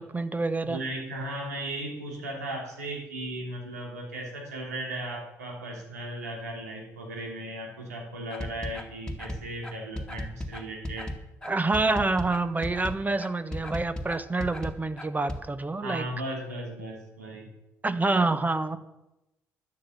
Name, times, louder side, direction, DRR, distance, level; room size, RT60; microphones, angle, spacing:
voice 1, 0.0-0.8 11.4-16.1 17.8-18.8, right 3 dB, 20° right, 12 dB, 1.2 m, -27 dB
voice 2, 0.6-11.1 15.8-17.5, right 1 dB, 80° right, 0 dB, 3.1 m, -36 dB
sound 1, 8.3-15.4, left 1 dB, 10° left, 2.1 m, -36 dB
12.5 x 10.5 x 7.1 m, 0.94 s
figure-of-eight pair, 50°, 9 cm